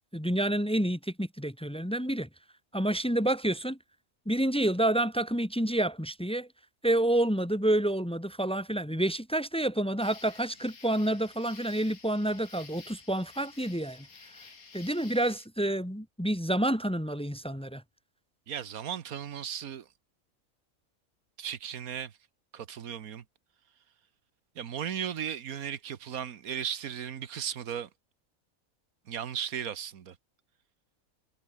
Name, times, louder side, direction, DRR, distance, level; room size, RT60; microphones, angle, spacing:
voice 1, 0.1-2.3 2.7-3.8 4.3-6.5 6.8-14.1 14.7-17.8, right 1 dB, 5° left, 1.4 m, -28 dB
sound 1, 10.0-15.5, left 5 dB, 90° left, 2.8 m, -52 dB
voice 2, 18.5-19.9 21.4-22.2 22.5-23.2 24.5-27.9 29.1-30.2, right 8 dB, 85° right, 1.6 m, -36 dB
omnidirectional pair, 1.5 m